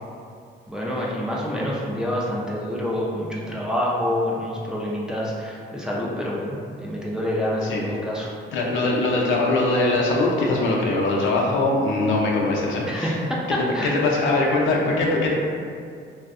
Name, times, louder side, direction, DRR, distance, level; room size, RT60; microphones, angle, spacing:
voice 1, 0.7-8.3 12.9-13.4 13.7-14.0, left 1 dB, 5° right, -5 dB, 0.4 m, -27 dB
voice 2, 8.5-13.2 13.5-15.3, left 2 dB, 75° left, -2 dB, 0.5 m, -22 dB
2.5 x 2.1 x 2.4 m, 2.2 s
cardioid pair, 90°, 20 cm